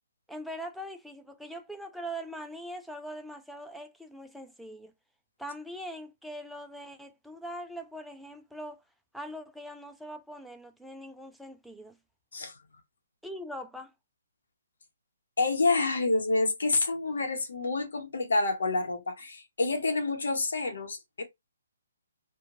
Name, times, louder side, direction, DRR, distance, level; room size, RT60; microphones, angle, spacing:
voice 1, 0.3-4.9 5.4-8.8 9.1-12.0 13.2-13.9, equal, ahead, 0.4 m, -42 dB
voice 2, 15.4-21.2, left 3 dB, 70° left, 0.9 m, -28 dB
2.9 x 2.3 x 2.6 m
hypercardioid pair, 140°, 0 cm